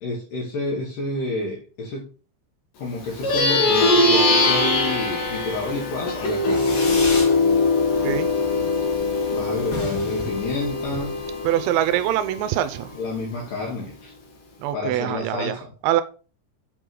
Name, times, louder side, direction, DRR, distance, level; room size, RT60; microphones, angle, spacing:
voice 1, 0.0-2.1 2.8-6.8 9.3-11.2 12.9-14.1 14.7-15.7, left 2 dB, 75° left, -1 dB, 1.9 m, -29 dB
Plucked string instrument, 3.1-12.8, left 2 dB, 55° left, 2.7 m, -22 dB
Fireworks, 6.5-7.4 7.7-8.3 8.6-8.7 8.9-9.0 9.3-9.4 9.6-11.3, left 2 dB, 40° left, 2.4 m, -32 dB
voice 2, 11.4-12.9 14.6-15.6 15.8-16.0, right 12 dB, 80° right, 10 dB, 2.8 m, -24 dB
8.2 x 3.8 x 4.6 m, 0.37 s
omnidirectional pair, 5.7 m